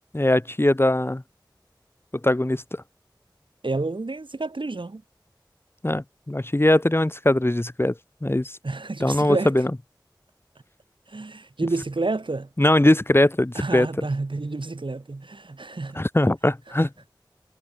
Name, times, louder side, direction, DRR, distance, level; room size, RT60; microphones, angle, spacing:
voice 1, 0.1-1.2 2.2-2.8 5.8-7.9 8.2-8.5 9.0-9.7 12.6-14.0 15.9-16.9, left 1 dB, 30° left, 1.3 m, -21 dB
voice 2, 3.6-5.0 8.6-9.5 11.1-12.5 13.5-16.0, right 3 dB, 90° right, 4.3 m, -29 dB
wide cardioid pair, 40°, 8 cm